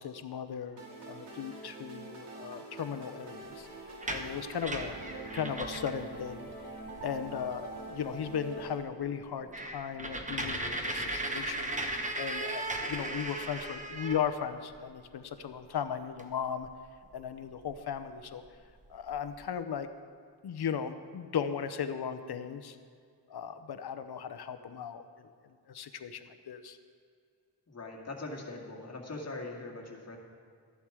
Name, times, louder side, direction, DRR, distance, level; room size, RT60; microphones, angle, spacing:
voice 1, 0.0-3.7 4.1-5.0 5.3-6.5 7.0-16.7 17.1-18.4 18.9-19.9 20.4-22.8 23.3-25.3 25.7-26.8, left 8 dB, 70° left, 10 dB, 0.8 m, -37 dB
sound 1, 0.8-8.8, right 2 dB, 90° right, 2.2 m, -45 dB
sound 2, 3.9-6.0 6.5-6.6 6.8-7.3 7.8-7.9 8.3-8.4 8.7-8.8 9.1-14.8 16.2-16.3 16.6-17.9 18.5-18.6 18.9-19.4, right 1 dB, 20° right, 1.1 m, -37 dB
voice 2, 27.7-30.2, left 2 dB, 40° left, -1 dB, 2.1 m, -41 dB
13.5 x 10.5 x 4.9 m, 2.2 s
wide cardioid pair, 115°, 40 cm